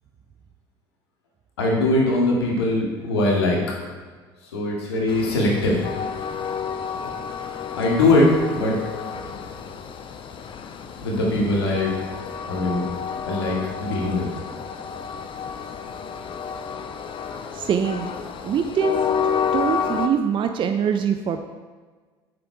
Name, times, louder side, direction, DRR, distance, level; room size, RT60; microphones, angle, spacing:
voice 1, 1.6-3.6 4.4-5.9 7.0-7.1 7.7-8.8 11.0-11.9 12.5-12.8 13.2-14.3, left 2 dB, 85° left, -2 dB, 2.0 m, -21 dB
Train, 5.1-20.1, left 7 dB, 40° left, 0.8 m, -30 dB
voice 2, 17.5-18.1 18.4-18.9 19.5-21.5, right 8 dB, 40° right, 7 dB, 0.5 m, -23 dB
7.7 x 6.8 x 4.7 m, 1.4 s
hypercardioid pair, 70°, 13 cm